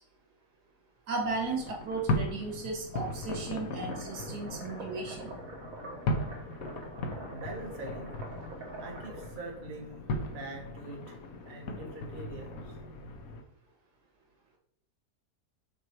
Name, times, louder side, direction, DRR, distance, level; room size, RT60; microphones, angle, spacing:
voice 1, 1.1-5.3, right 3 dB, 75° right, 1 dB, 2.2 m, -35 dB
sound 1, 1.2-13.4, left 1 dB, 60° left, 1.3 m, -37 dB
sound 2, 3.9-9.5, right 2 dB, 60° right, 1.8 m, -45 dB
voice 2, 7.3-8.1 8.8-11.2 11.4-12.7, right 2 dB, 35° right, 0 dB, 1.3 m, -44 dB
6.0 x 4.9 x 4.5 m, 0.74 s
omnidirectional pair, 1.7 m